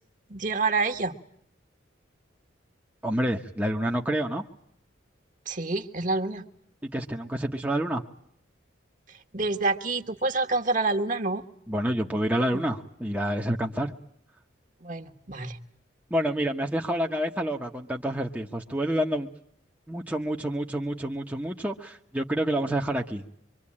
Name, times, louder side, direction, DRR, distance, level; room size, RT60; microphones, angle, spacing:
voice 1, 0.3-1.1 5.5-6.4 9.3-11.4 14.8-15.6, right 3 dB, 40° right, 8 dB, 1.5 m, -27 dB
voice 2, 3.0-4.4 6.8-8.0 11.7-13.9 16.1-19.3 19.9-23.2, right 1 dB, 10° right, 0 dB, 1.1 m, -28 dB
25.5 x 24.0 x 8.7 m, 0.71 s
head